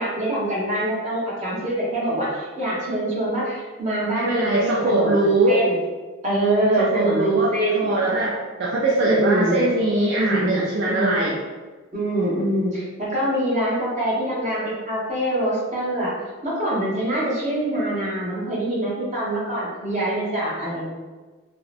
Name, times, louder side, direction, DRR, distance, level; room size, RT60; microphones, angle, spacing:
voice 1, 0.0-5.7 6.2-7.8 9.0-9.6 10.2-11.3 11.9-16.1 16.4-20.8, right 1 dB, 35° right, -7 dB, 0.8 m, -24 dB
voice 2, 4.1-5.6 6.8-11.4, right 2 dB, 55° right, -5 dB, 0.3 m, -21 dB
2.7 x 2.0 x 2.5 m, 1.3 s
head